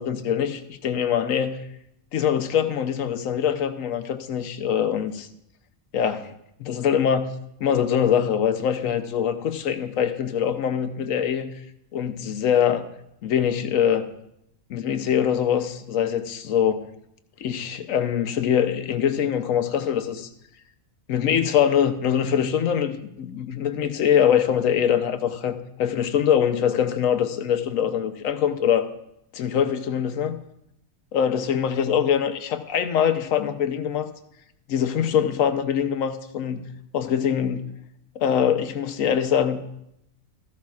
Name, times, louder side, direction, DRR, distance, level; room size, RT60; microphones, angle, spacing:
voice 1, 0.0-1.6 2.1-5.3 5.9-6.3 6.6-7.3 7.6-11.5 11.9-12.9 13.2-14.1 14.7-16.8 17.4-20.3 21.1-28.9 29.3-30.4 31.1-34.1 34.7-36.7 36.9-37.7 38.2-39.6, left 8 dB, 85° left, 9 dB, 1.1 m, -23 dB
14.0 x 11.5 x 2.4 m, 0.78 s
omnidirectional pair, 1.4 m